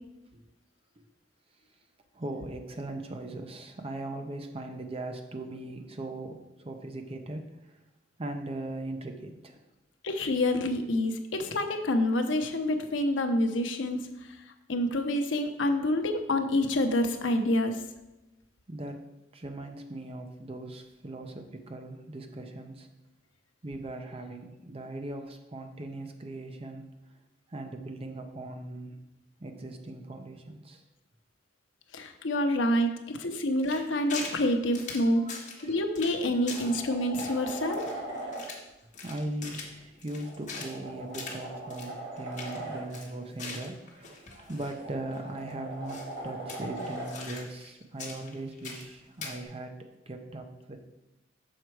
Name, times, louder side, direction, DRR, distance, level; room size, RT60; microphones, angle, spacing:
voice 1, 2.1-7.7 8.2-9.6 18.7-19.0 19.3-22.9 23.6-26.8 27.5-28.9 29.4-30.8 35.2-35.8 36.5-36.8 37.4-37.5 39.0-46.0 46.2-49.7 50.1-50.8, right 2 dB, 30° right, 5 dB, 0.7 m, -39 dB
voice 2, 10.0-14.0 14.7-17.8 31.9-37.8, left 1 dB, 80° left, 6 dB, 0.7 m, -27 dB
sound 1, 33.6-34.4 34.7-35.6 36.0-36.2 36.5-36.8 37.1-38.7 38.9-40.7 41.1-41.4 41.7-41.9 42.2-42.6 42.9-44.8 45.1-45.2 45.9-46.2 46.5-47.7 48.0-48.9 49.2-49.3, left 4 dB, 40° left, 1.2 m, -42 dB
sound 2, 35.6-35.7 36.2-38.4 40.1-42.8 44.3-47.1 49.4-49.5, right 2 dB, 60° right, 2.0 m, -40 dB
6.5 x 4.4 x 4.6 m, 0.97 s
head